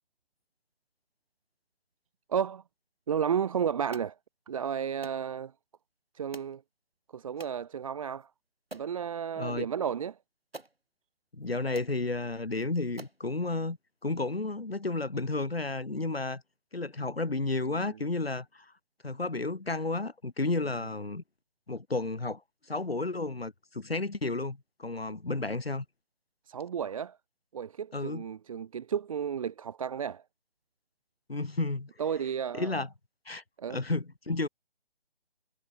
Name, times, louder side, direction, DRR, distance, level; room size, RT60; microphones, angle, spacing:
voice 1, 2.3-2.6 3.1-4.2 4.5-5.5 6.1-6.6 7.1-8.3 8.7-10.2 17.7-18.0 26.5-27.2 27.5-30.2 32.0-32.8 33.6-33.8, right 8 dB, 35° right, 1.0 m, -32 dB
sound 1, 3.9-4.1 5.0-5.2 6.3-6.6 7.4-7.6 8.2-8.3 8.7-9.0 10.0-10.1 10.5-10.8 11.4-11.5 11.7-12.0 12.6-12.7 13.0-13.2, right 2 dB, 80° right, 6.0 m, -47 dB
voice 2, 9.4-9.7 11.3-13.8 14.0-16.4 16.7-18.7 19.0-21.2 21.7-22.4 22.7-25.9 27.9-28.2 31.3-31.9 32.5-32.9 33.3-33.4 33.7-34.5, left 3 dB, 85° left, 1.8 m, -32 dB
figure-of-eight pair, 145°, 30 cm